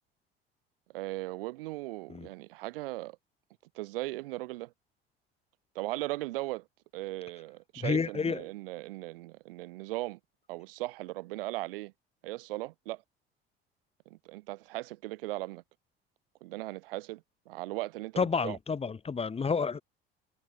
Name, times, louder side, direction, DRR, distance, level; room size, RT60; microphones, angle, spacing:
voice 1, 0.9-3.2 3.7-4.7 5.7-6.6 6.9-10.2 10.5-11.9 12.2-13.0 14.1-15.6 16.4-18.6, right 19 dB, 70° right, 0.7 m, -38 dB
voice 2, 7.8-8.4 18.2-19.8, left 5 dB, 20° left, 1.1 m, -30 dB
figure-of-eight pair, 60°, 30 cm